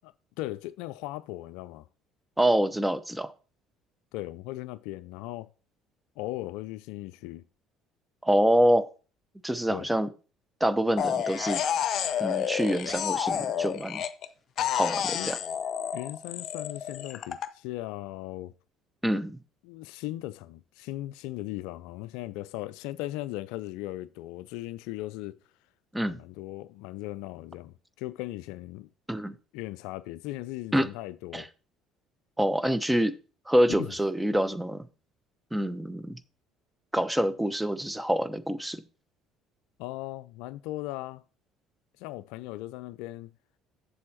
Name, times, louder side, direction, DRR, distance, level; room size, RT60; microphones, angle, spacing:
voice 1, 0.0-1.9 4.1-5.5 6.2-7.4 9.7-9.9 15.1-15.3 15.9-18.5 19.6-25.4 26.1-28.9 29.5-31.5 33.7-33.9 39.8-41.2 42.0-43.3, left 16 dB, 65° left, 0.3 m, -38 dB
voice 2, 2.4-3.3 8.2-8.9 9.4-10.1 10.6-11.6 12.2-14.0 14.7-15.4 19.0-19.4 25.9-26.2 29.1-29.3 30.7-30.9 31.3-31.5 32.4-33.1 33.5-34.8 35.5-36.2 36.9-38.8, equal, 5° right, 0.8 m, -26 dB
sound 1, 11.0-14.3 14.6-17.5, left 9 dB, 50° left, 0.7 m, -30 dB
7.5 x 6.9 x 4.3 m
figure-of-eight pair, 55°, 0 cm